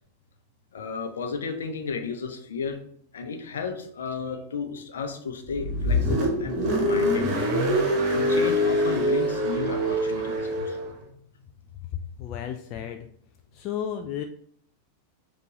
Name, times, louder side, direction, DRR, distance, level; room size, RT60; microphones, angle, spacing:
voice 1, 0.7-2.8 3.1-7.3 8.1-10.8 12.7-12.8, left 5 dB, 65° left, 5 dB, 0.7 m, -33 dB
Car, 5.5-10.9, equal, 40° right, 1.1 m, -24 dB
voice 2, 12.2-13.0 13.5-14.2, left 9 dB, 40° left, 5 dB, 0.3 m, -33 dB
6.6 x 2.5 x 3.0 m, 0.64 s
figure-of-eight pair, 90°, 0 cm